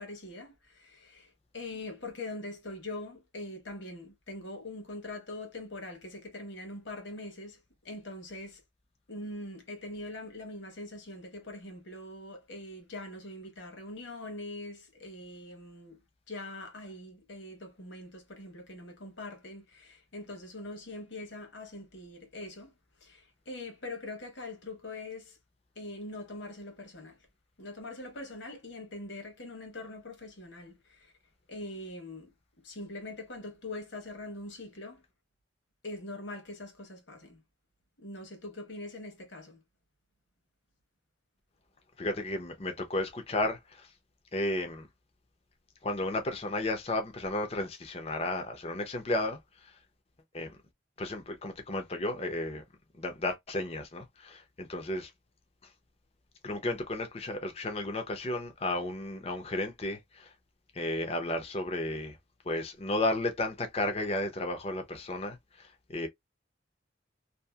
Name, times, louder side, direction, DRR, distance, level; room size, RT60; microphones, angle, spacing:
voice 1, 0.0-8.6 9.1-22.7 23.0-25.4 25.7-27.2 27.6-31.1 31.5-32.3 32.6-35.0 35.8-37.4 38.0-39.6, left 2 dB, 70° left, 1.1 m, -43 dB
voice 2, 42.0-43.9 44.3-44.9 45.8-49.7 50.3-50.6 51.0-52.6 53.0-55.1 56.4-60.3 60.7-62.2 62.4-66.1, left 2 dB, 30° left, 0.6 m, -33 dB
2.8 x 2.5 x 2.3 m
head